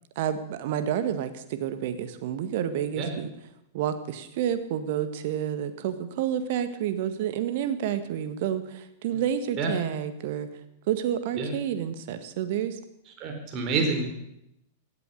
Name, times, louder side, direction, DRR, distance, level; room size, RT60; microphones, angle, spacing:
voice 1, 0.2-3.3 3.7-10.5 10.9-12.8, right 9 dB, 55° right, 10 dB, 1.7 m, -29 dB
voice 2, 13.2-14.1, right 4 dB, 35° right, 4 dB, 4.6 m, -27 dB
16.5 x 12.5 x 6.7 m, 0.80 s
figure-of-eight pair, 95°, 0 cm